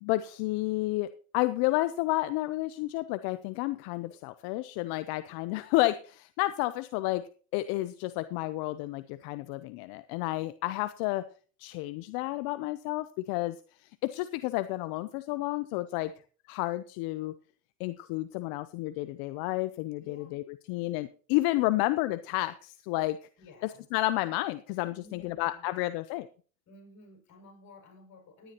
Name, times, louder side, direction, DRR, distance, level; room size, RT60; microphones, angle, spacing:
voice 1, 0.0-7.2 7.5-11.3 11.6-16.1 16.5-17.3 17.8-23.2 23.6-26.3, left 18 dB, 80° left, 13 dB, 0.6 m, -31 dB
voice 2, 20.0-20.4 23.4-23.8 25.0-25.7 26.7-28.5, left 3 dB, 50° left, 1 dB, 6.6 m, -54 dB
17.0 x 10.5 x 2.9 m, 0.39 s
supercardioid pair, 80°, 36 cm